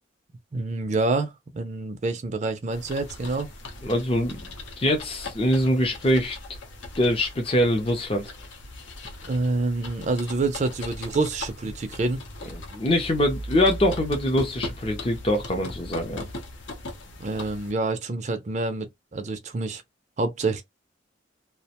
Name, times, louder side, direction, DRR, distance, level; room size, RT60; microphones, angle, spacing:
voice 1, 0.5-3.5 9.3-12.2 17.2-19.8 20.2-20.6, right 3 dB, 35° right, 0.4 m, -27 dB
sound 1, 2.7-17.7, left 1 dB, 70° left, 0.6 m, -39 dB
voice 2, 3.8-4.4 4.8-6.4 7.0-8.3 12.5-16.2, equal, 30° left, 0.5 m, -23 dB
2.4 x 2.1 x 2.8 m
head